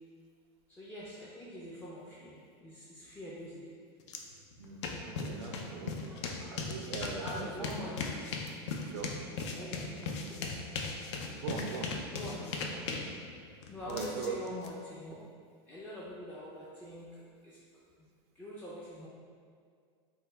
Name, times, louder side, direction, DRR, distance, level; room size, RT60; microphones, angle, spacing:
voice 1, 0.7-3.7 6.0-6.5 7.2-8.1 9.5-10.4 12.1-12.8 13.7-15.2 15.7-17.6 18.0-18.1 18.3-19.1, left 1 dB, 15° left, -8 dB, 0.4 m, -44 dB
sound 1, 4.1-4.2 4.5-14.7, left 4 dB, 80° left, 0.4 m, -38 dB
voice 2, 4.6-6.0 6.5-7.7 8.8-9.2 11.3-11.9 13.9-14.4, right 6 dB, 65° right, 3 dB, 0.4 m, -40 dB
3.1 x 2.2 x 3.3 m, 2.1 s
supercardioid pair, 130°, 14 cm